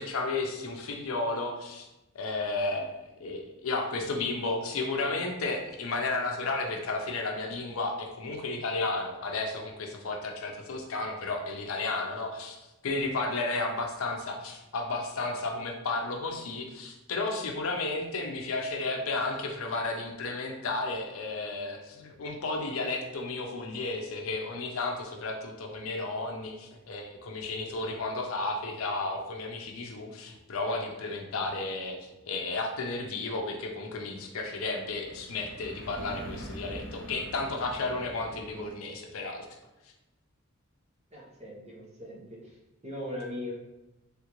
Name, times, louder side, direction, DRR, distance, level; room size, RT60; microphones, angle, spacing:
voice 1, 0.0-1.9 2.1-32.0 32.3-39.5, left 3 dB, 80° left, 2 dB, 0.5 m, -33 dB
sound 1, 33.6-38.7, right 1 dB, 90° right, 1.5 m, -45 dB
voice 2, 41.1-42.6 42.8-43.5, left 1 dB, 30° right, -4 dB, 0.8 m, -39 dB
3.5 x 2.4 x 2.9 m, 0.96 s
head